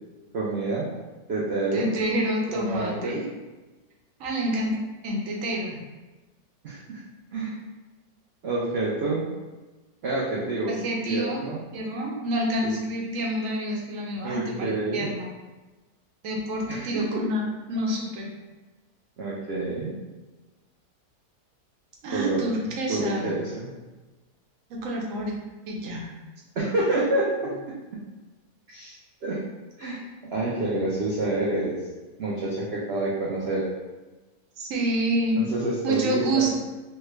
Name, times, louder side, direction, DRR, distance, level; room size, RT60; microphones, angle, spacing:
voice 1, 0.3-0.9 1.3-1.9 2.5-3.2 6.6-7.0 7.3-7.6 8.4-9.3 10.0-10.8 11.1-11.6 12.6-12.7 14.2-15.1 16.7-17.2 19.2-20.0 22.1-22.4 22.9-23.7 26.6-27.6 28.7-29.0 29.2-29.4 29.8-31.8 32.2-33.7 35.3-36.5, right 2 dB, 85° right, -5 dB, 0.5 m, -28 dB
voice 2, 1.7-3.2 4.2-5.8 10.7-11.4 11.7-15.3 16.2-18.3 22.0-23.3 24.7-25.4 25.7-26.1 34.6-35.4 35.8-36.5, right 1 dB, 65° right, -2 dB, 0.9 m, -28 dB
3.3 x 2.2 x 3.2 m, 1.2 s
omnidirectional pair, 1.8 m